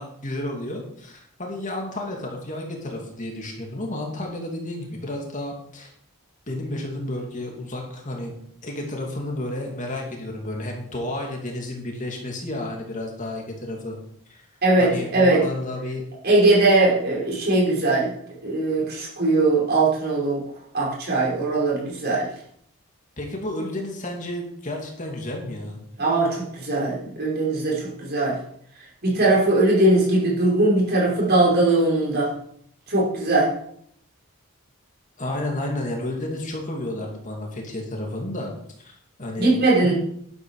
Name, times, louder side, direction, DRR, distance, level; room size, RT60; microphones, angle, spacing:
voice 1, 0.0-5.9 6.5-8.3 8.6-14.0 14.3-14.4 14.8-16.0 23.2-25.8 35.2-38.5 38.8-39.5 39.8-39.9, left 1 dB, 35° left, 0 dB, 2.7 m, -31 dB
voice 2, 14.6-15.4 16.2-18.1 18.4-20.4 20.7-22.3 26.0-28.4 29.0-32.3 32.9-33.5 39.4-39.9, right 2 dB, 45° right, -5 dB, 5.4 m, -20 dB
12.0 x 11.5 x 5.0 m, 0.68 s
head